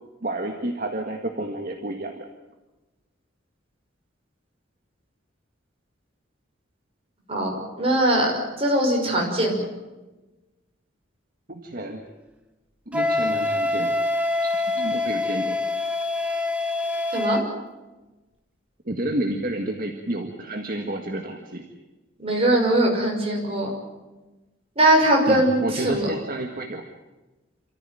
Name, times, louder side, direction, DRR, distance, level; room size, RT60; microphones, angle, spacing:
voice 1, 0.2-2.3 11.5-12.1 12.9-14.0 14.4-15.6 18.9-21.6 25.3-26.9, right 1 dB, 45° right, 4 dB, 1.8 m, -30 dB
voice 2, 7.3-9.6 17.1-17.4 22.2-23.7 24.8-26.1, right 1 dB, 30° right, 0 dB, 5.9 m, -21 dB
Wind instrument woodwind instrument, 12.9-17.5, left 2 dB, 5° right, 1.6 m, -25 dB
28.0 x 14.5 x 9.2 m, 1.1 s
head